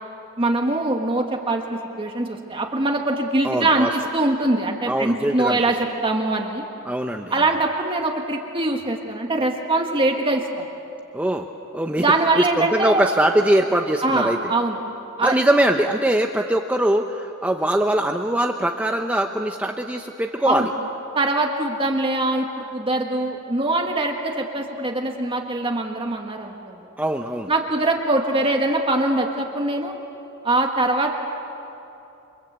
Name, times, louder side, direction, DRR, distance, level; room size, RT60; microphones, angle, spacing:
voice 1, 0.4-3.9 4.1-6.6 7.3-10.7 12.0-13.0 14.0-14.8 15.2-15.3 20.4-20.7 21.1-26.8 27.5-29.9 30.4-31.2, right 2 dB, 25° right, 1 dB, 1.6 m, -23 dB
voice 2, 3.4-3.9 4.9-5.6 6.8-7.4 11.1-11.5 11.7-12.0 12.4-14.5 15.2-20.7 27.0-27.5, right 1 dB, 5° right, 3 dB, 0.8 m, -22 dB
28.5 x 25.0 x 8.1 m, 2.9 s
head